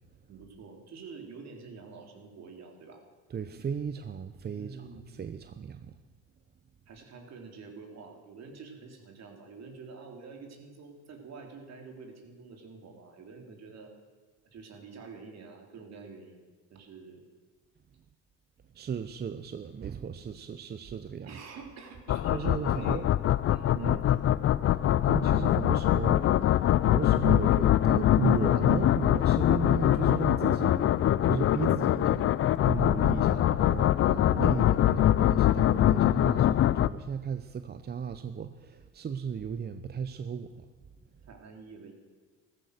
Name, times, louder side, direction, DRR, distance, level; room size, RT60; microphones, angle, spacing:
voice 1, 0.3-3.0 4.5-5.1 6.9-13.9 14.5-16.4 16.7-17.2 21.3-23.1 23.5-24.3 41.3-41.9, right 4 dB, 50° right, 3 dB, 3.7 m, -47 dB
voice 2, 3.3-4.8 5.2-5.8 18.7-21.3 22.3-23.1 23.7-24.0 25.0-30.9 31.2-32.3 32.6-40.7, right 7 dB, 30° right, 10 dB, 0.7 m, -35 dB
sound 1, 22.1-36.9, left 12 dB, 40° left, 0.5 m, -24 dB
14.5 x 14.5 x 6.6 m, 1.4 s
supercardioid pair, 85°, 33 cm